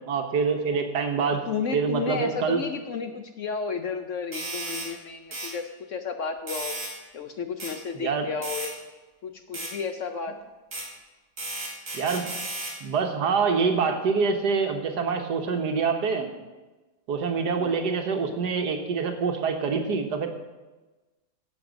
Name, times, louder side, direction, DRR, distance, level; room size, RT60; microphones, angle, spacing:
voice 1, 0.1-1.4 1.7-2.6 7.9-8.3 11.9-12.3 12.8-16.3 17.1-20.3, right 5 dB, 75° right, 5 dB, 1.7 m, -25 dB
voice 2, 1.5-6.8 7.1-8.7 9.2-10.4 17.6-17.8, left 5 dB, 60° left, 7 dB, 0.9 m, -32 dB
sound 1, 4.3-4.9 5.3-5.5 6.5-6.9 7.6-7.7 8.4-8.7 9.5-9.7 10.7-10.9 11.4-12.8, right 2 dB, 50° right, 3.2 m, -34 dB
13.0 x 7.9 x 5.1 m, 1.2 s
omnidirectional pair, 1.8 m